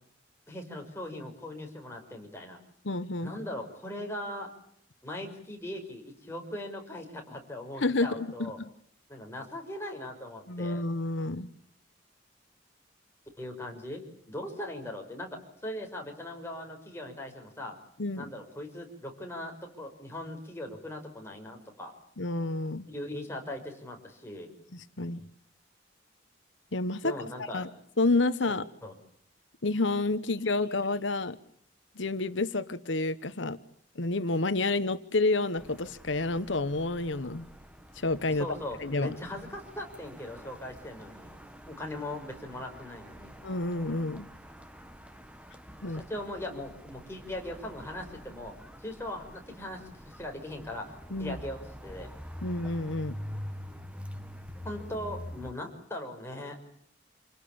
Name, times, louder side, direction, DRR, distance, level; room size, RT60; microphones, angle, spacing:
voice 1, 0.5-2.6 3.2-4.5 5.0-8.6 9.1-10.8 13.4-14.0 14.3-17.8 18.2-21.9 22.9-24.5 27.0-27.7 28.5-28.6 28.8-28.9 30.4-30.6 31.1-31.2 38.4-41.3 41.6-43.4 45.8-48.5 48.8-50.8 51.2-52.1 54.6-56.6, left 1 dB, 15° left, 1 dB, 5.6 m, -39 dB
voice 2, 2.8-3.3 7.8-8.7 10.5-11.5 18.0-18.2 22.2-22.9 25.0-25.2 26.7-27.1 27.5-27.7 28.0-28.7 29.6-31.4 32.0-33.6 33.9-37.5 38.0-38.5 38.8-39.2 43.4-44.3 45.8-46.0 51.1-51.4 52.4-53.2, left 2 dB, 75° left, 12 dB, 1.2 m, -29 dB
sound 1, 35.6-55.5, equal, 5° right, 1.5 m, -46 dB
28.0 x 18.0 x 8.7 m, 0.67 s
head